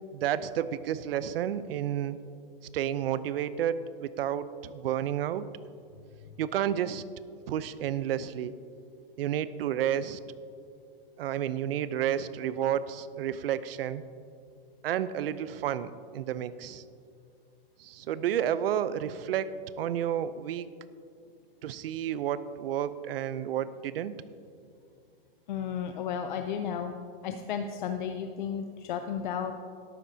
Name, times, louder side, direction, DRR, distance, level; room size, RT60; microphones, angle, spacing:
voice 1, 0.1-2.2 2.7-5.4 6.4-7.0 7.5-8.5 9.2-10.2 11.2-14.0 14.8-16.8 17.8-20.7 21.6-24.1, right 10 dB, 80° right, 15 dB, 0.6 m, -31 dB
voice 2, 25.5-26.9 27.2-29.5, left 7 dB, 55° left, 7 dB, 0.6 m, -33 dB
13.0 x 12.0 x 2.7 m, 2.3 s
supercardioid pair, 170°, 29 cm